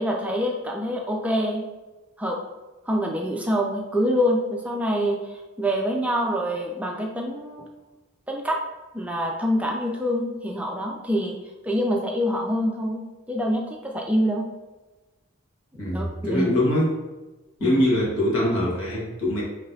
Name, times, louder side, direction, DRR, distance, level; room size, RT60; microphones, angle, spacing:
voice 1, 0.0-1.6 2.2-2.4 2.9-7.7 8.3-8.6 8.9-11.3 11.6-14.4 15.9-16.0 16.3-16.5 17.6-17.8, equal, 5° right, 0 dB, 0.3 m, -25 dB
voice 2, 15.8-16.9 17.6-19.4, left 1 dB, 85° left, -4 dB, 1.5 m, -23 dB
5.9 x 3.1 x 2.6 m, 1.1 s
head